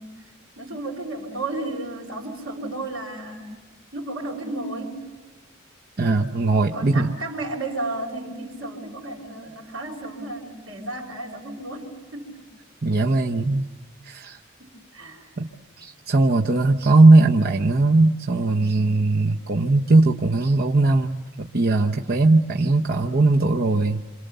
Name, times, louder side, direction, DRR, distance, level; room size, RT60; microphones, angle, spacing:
voice 1, 0.0-3.5 3.9-5.0 6.7-12.4 14.6-15.3, right 2 dB, 70° right, -4 dB, 4.1 m, -33 dB
voice 2, 6.0-7.1 12.8-13.6 14.0-14.4 15.4-15.5 15.8-24.1, right 2 dB, 45° right, 1 dB, 0.9 m, -19 dB
28.0 x 27.0 x 6.9 m, 1.3 s
head